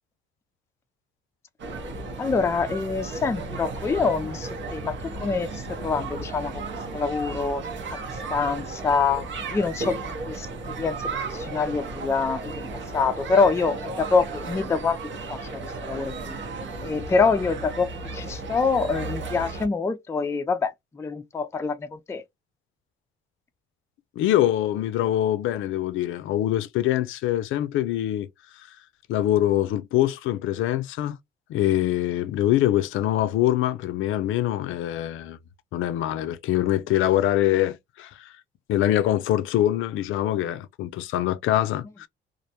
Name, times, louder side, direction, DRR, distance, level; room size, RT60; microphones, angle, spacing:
sound 1, 1.6-19.7, right 3 dB, 70° right, 1.0 m, -34 dB
voice 1, 2.2-6.6 6.9-7.6 8.3-9.2 9.5-10.0 10.3-10.5 10.8-12.7 12.9-15.0 15.3-16.4 16.8-22.2, left 4 dB, 15° left, 0.3 m, -25 dB
voice 2, 24.2-28.3 29.1-31.2 31.5-35.4 35.7-38.3 38.7-42.1, left 13 dB, 80° left, 0.4 m, -24 dB
2.5 x 2.1 x 2.8 m
cardioid pair, 90°, 20 cm